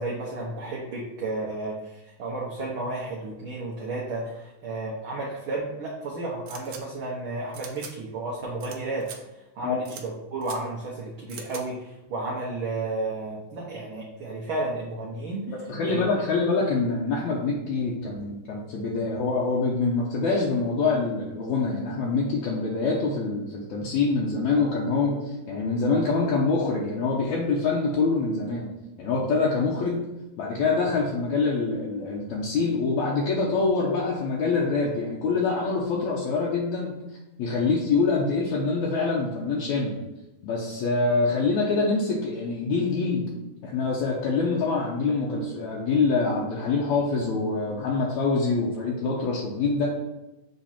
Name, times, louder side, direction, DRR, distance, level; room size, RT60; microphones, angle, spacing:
voice 1, 0.0-9.1 9.5-15.5 15.8-16.0, right 2 dB, 70° right, -4 dB, 1.2 m, -32 dB
sound 1, 6.5-6.8 7.5-7.9 8.6-8.8 9.0-9.2 9.8-10.0 10.4-10.6 11.3-11.6, right 7 dB, 90° right, 1.3 m, -41 dB
voice 2, 15.5-28.7 29.0-30.0 30.4-37.0 37.4-40.0 40.4-43.2 43.6-49.9, left 4 dB, 70° left, -4 dB, 2.1 m, -25 dB
7.5 x 3.7 x 4.3 m, 0.98 s
omnidirectional pair, 3.7 m